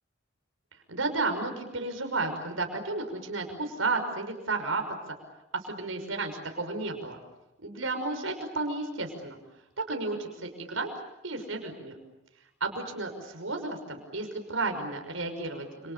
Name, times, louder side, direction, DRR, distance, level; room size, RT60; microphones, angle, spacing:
voice 1, 0.7-5.1 5.5-7.2 7.6-9.4 9.8-10.9 11.2-11.9 12.6-15.9, right 3 dB, 90° right, 4 dB, 6.0 m, -32 dB
30.0 x 28.5 x 7.0 m, 0.91 s
head